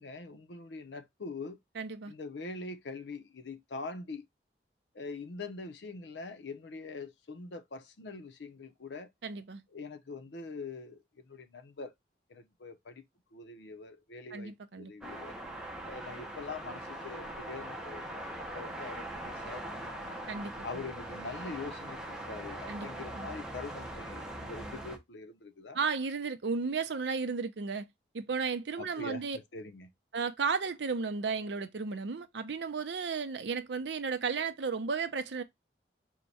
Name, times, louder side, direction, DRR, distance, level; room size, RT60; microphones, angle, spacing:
voice 1, 0.0-1.6 2.1-4.3 4.9-9.1 9.7-11.9 12.3-13.0 13.3-15.4 15.8-20.2 20.6-25.8 28.8-29.9, left 3 dB, 85° left, 0.6 m, -43 dB
voice 2, 1.8-2.1 9.2-9.6 14.3-14.9 20.3-20.8 22.7-22.9 23.2-23.3 25.7-27.9 28.1-29.4 30.1-35.4, right 5 dB, 80° right, 0.5 m, -34 dB
sound 1, 15.0-25.0, right 1 dB, 5° right, 0.6 m, -41 dB
4.5 x 2.2 x 3.9 m
head